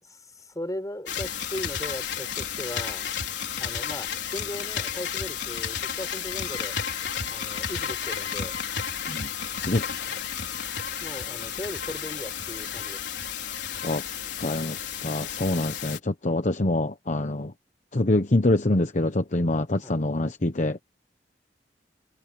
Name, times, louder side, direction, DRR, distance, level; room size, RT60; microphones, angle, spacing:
voice 1, 0.0-3.1 3.6-6.8 7.3-8.6 10.1-10.2 11.0-13.0 19.8-20.0, left 1 dB, 20° left, 6.0 m, -38 dB
sound 1, 1.1-16.0, left 8 dB, 80° left, 4.6 m, -32 dB
voice 2, 9.6-9.9 13.8-14.0 14.4-17.5 17.9-20.8, left 2 dB, 45° left, 1.1 m, -25 dB
head